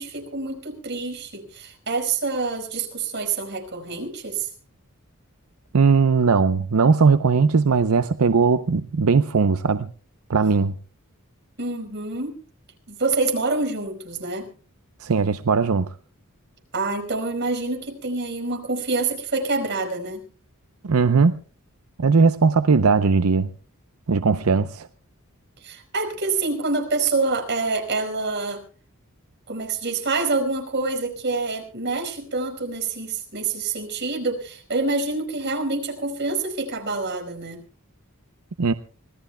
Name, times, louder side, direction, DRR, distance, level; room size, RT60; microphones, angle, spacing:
voice 1, 0.0-4.5 11.6-12.4 12.9-14.5 16.7-20.2 25.6-28.6 29.5-37.6, right 3 dB, 55° right, 5 dB, 4.8 m, -26 dB
voice 2, 5.7-9.9 10.3-10.8 15.0-15.9 20.8-21.3 22.0-23.5 24.1-24.9 38.6-38.7, right 4 dB, 90° right, 11 dB, 0.7 m, -19 dB
25.5 x 18.5 x 2.2 m, 0.40 s
head